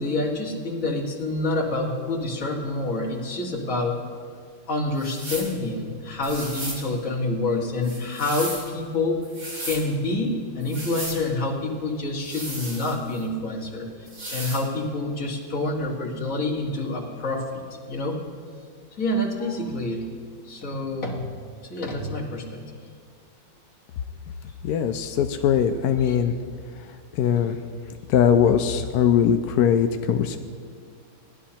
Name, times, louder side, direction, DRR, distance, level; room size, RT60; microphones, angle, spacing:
voice 1, 0.0-4.0 4.7-9.3 9.6-13.9 14.3-18.2 19.0-20.1 20.5-21.2 21.7-22.6 26.1-26.2, left 2 dB, 45° left, -1 dB, 1.9 m, -27 dB
sound 1, 5.0-5.5 6.2-6.8 7.8-8.7 9.2-9.8 10.6-11.2 12.2-13.2 14.1-14.7, right 1 dB, 75° right, 3.6 m, -35 dB
voice 2, 24.6-26.3 26.7-27.6 28.1-30.4, left 8 dB, 75° left, 7 dB, 0.8 m, -21 dB
18.5 x 11.5 x 2.9 m, 2.1 s
omnidirectional pair, 2.2 m